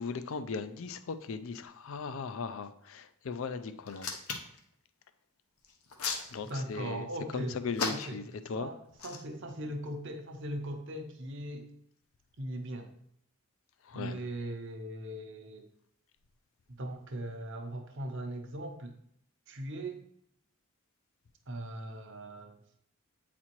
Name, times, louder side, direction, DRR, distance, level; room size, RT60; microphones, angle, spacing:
voice 1, 0.0-4.1 6.3-7.1 7.3-8.7 13.8-14.2, left 5 dB, 65° left, 0.4 m, -38 dB
Hands, 3.9-4.6 5.6-6.8 7.7-8.3 8.9-9.2, left 5 dB, 85° left, 0.9 m, -35 dB
voice 2, 6.5-7.6 7.9-8.2 8.5-11.7 12.4-12.9 13.9-15.7 16.8-18.9 19.5-20.0 21.5-22.6, right 1 dB, 55° right, 0.9 m, -39 dB
8.5 x 4.2 x 3.0 m
head